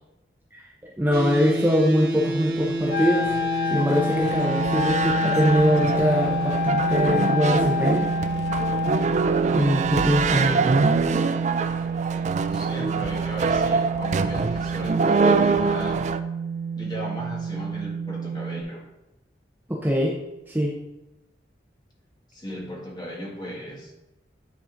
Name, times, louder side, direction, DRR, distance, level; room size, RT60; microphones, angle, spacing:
voice 1, 0.5-3.3 3.7-8.1 9.5-10.4 19.7-20.2 20.5-20.8, equal, 10° right, -2 dB, 0.7 m, -23 dB
sound 1, 1.1-18.6, right 5 dB, 55° right, 1.0 m, -29 dB
sound 2, 2.7-16.2, right 4 dB, 40° right, 0.3 m, -25 dB
Wind instrument woodwind instrument, 2.9-9.1, left 8 dB, 55° left, 0.7 m, -27 dB
voice 2, 10.3-10.7 12.5-16.0 16.8-18.8 22.3-23.9, equal, 25° left, -2 dB, 1.6 m, -36 dB
9.5 x 4.1 x 3.8 m, 0.95 s
head